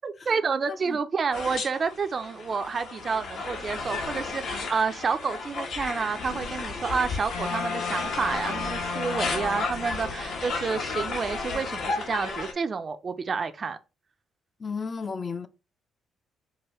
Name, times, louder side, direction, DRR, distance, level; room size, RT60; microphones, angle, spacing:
voice 1, 0.0-13.8, right 5 dB, 40° right, 0.4 m, -29 dB
voice 2, 0.7-1.0 14.6-15.5, left 5 dB, 35° left, 0.5 m, -34 dB
sound 1, 1.3-12.5, left 4 dB, 70° left, 1.2 m, -33 dB
sound 2, 7.3-10.5, left 5 dB, 90° left, 0.6 m, -34 dB
4.8 x 2.6 x 3.0 m
cardioid pair, 90°, 0 cm